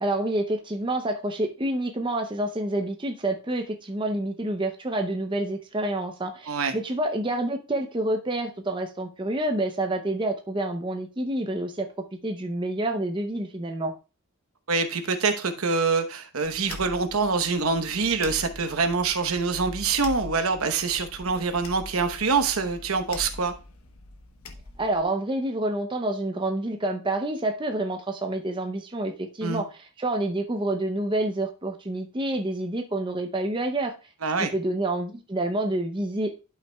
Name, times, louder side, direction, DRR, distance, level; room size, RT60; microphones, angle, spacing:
voice 1, 0.0-11.9 12.2-13.9 24.8-33.9 34.5-36.4, right 1 dB, 20° right, 0.6 m, -28 dB
voice 2, 14.7-23.5 29.4-29.6 34.2-34.5, right 4 dB, 75° right, 1.0 m, -25 dB
sound 1, 16.4-25.0, left 2 dB, 75° left, 1.1 m, -42 dB
11.5 x 5.7 x 2.3 m
head